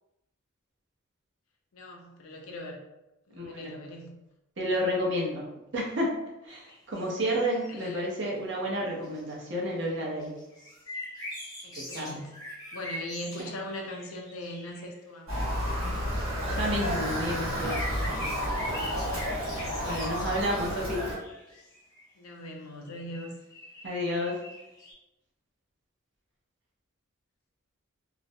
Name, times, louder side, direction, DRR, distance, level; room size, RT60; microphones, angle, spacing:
voice 1, 1.7-2.8 3.3-4.1 7.2-8.1 11.6-12.3 12.7-15.5 19.7-20.3 22.2-23.3, left 1 dB, 80° left, 1 dB, 0.5 m, -40 dB
voice 2, 3.4-3.7 4.6-10.4 11.8-12.2 16.4-17.8 19.5-21.0 23.8-24.4, equal, 55° right, -3 dB, 0.6 m, -31 dB
sound 1, 6.5-8.1 8.6-9.3 9.7-15.0 15.3-15.5 15.7-17.1 17.5-20.6 20.9-22.0 22.9-24.9, left 1 dB, 15° left, 0.6 m, -43 dB
Motor vehicle (road) / Siren, 15.3-21.1, equal, 80° right, 1.0 m, -31 dB
2.4 x 2.1 x 2.6 m, 0.95 s
head